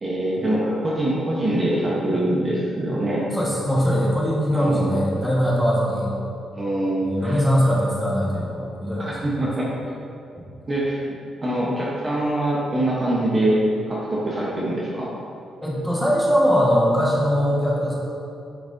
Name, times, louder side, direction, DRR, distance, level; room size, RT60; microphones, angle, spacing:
voice 1, 0.0-3.3 4.5-5.0 6.5-7.4 9.0-9.6 10.7-13.6 13.9-15.1, right 1 dB, 25° right, -6 dB, 0.8 m, -24 dB
voice 2, 3.3-6.1 7.0-9.3 15.6-17.9, equal, 5° left, -6 dB, 1.3 m, -21 dB
8.7 x 6.0 x 2.6 m, 2.6 s
cardioid pair, 160°, 0 cm